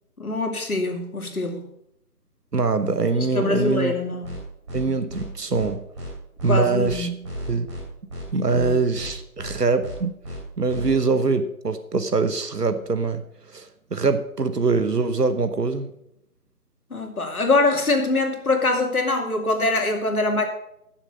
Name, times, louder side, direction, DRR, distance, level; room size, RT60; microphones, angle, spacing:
voice 1, 0.2-1.7 3.3-4.4 6.5-7.2 8.5-8.8 16.9-20.4, left 2 dB, 65° left, 3 dB, 2.5 m, -23 dB
voice 2, 2.5-3.9 4.7-5.8 6.4-7.1 7.5-7.7 8.3-10.1 10.6-15.9, right 4 dB, 90° right, 10 dB, 1.1 m, -23 dB
sound 1, 4.2-4.4 4.7-4.8 5.1-5.2 5.5-5.7 6.0-6.1 6.4-6.5 6.8-7.0 7.2-7.8 8.1-8.2 8.5-8.7 9.0-9.1 9.4-9.5 9.8-10.0 10.2-10.4 10.7-10.9, left 1 dB, 20° right, 3.5 m, -34 dB
13.0 x 7.1 x 5.2 m, 0.79 s
figure-of-eight pair, 155°, 46 cm